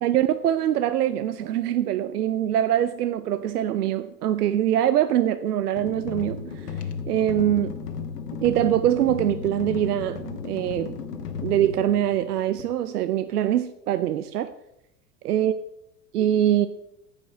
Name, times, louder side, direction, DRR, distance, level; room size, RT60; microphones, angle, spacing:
voice 1, 0.0-6.7 7.1-7.8 8.4-10.9 11.4-14.5 15.2-15.5 16.1-16.7, right 11 dB, 70° right, 0.6 m, -23 dB
sound 1, 5.7-12.6, left 6 dB, 70° left, 1.3 m, -34 dB
14.0 x 5.4 x 4.6 m
figure-of-eight pair, 90°, 48 cm